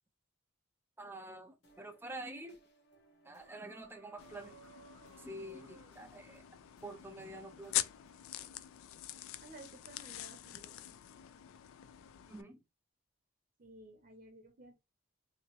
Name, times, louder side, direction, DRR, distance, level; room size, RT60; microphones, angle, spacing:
voice 1, 1.0-2.6 3.2-4.6 5.2-6.4 6.8-7.8 12.3-12.6, right 1 dB, 10° right, 0.3 m, -47 dB
sound 1, 1.6-8.5, right 1 dB, 50° left, 0.9 m, -67 dB
sound 2, 3.4-6.0 7.2-7.8 8.4-8.6, right 4 dB, 75° right, 0.9 m, -60 dB
sound 3, 4.2-12.4, left 13 dB, 75° left, 0.3 m, -44 dB
voice 2, 9.4-11.0 13.6-14.7, right 2 dB, 40° right, 0.6 m, -55 dB
2.8 x 2.7 x 2.9 m
head